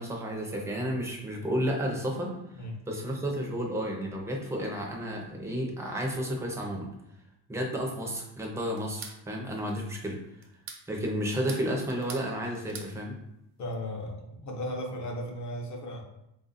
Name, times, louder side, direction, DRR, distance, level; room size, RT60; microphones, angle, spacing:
voice 1, 0.0-2.3 2.9-6.9 7.5-10.2 10.9-13.1, equal, 5° right, -1 dB, 0.5 m, -32 dB
sound 1, 8.8-9.2 10.4-10.8 11.3-12.3 12.5-12.9, right 6 dB, 85° right, 0.8 m, -43 dB
voice 2, 13.6-16.0, left 1 dB, 40° left, 1 dB, 0.7 m, -36 dB
3.6 x 2.5 x 4.0 m, 0.83 s
cardioid pair, 170°, 43 cm